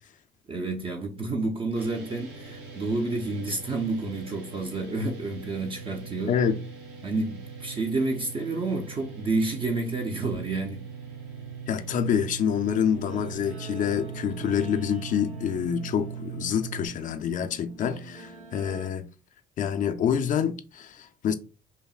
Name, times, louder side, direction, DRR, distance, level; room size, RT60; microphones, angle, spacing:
voice 1, 0.5-6.4 7.0-10.8, right 2 dB, 30° right, 0.6 m, -29 dB
sound 1, 1.7-16.9, right 6 dB, 85° right, 1.9 m, -41 dB
voice 2, 6.3-6.6 11.7-19.1 19.6-21.3, left 8 dB, 50° left, 0.5 m, -27 dB
Guitar, 12.9-18.9, right 4 dB, 50° right, 1.0 m, -45 dB
5.5 x 2.1 x 2.3 m
cardioid pair, 110°, 17 cm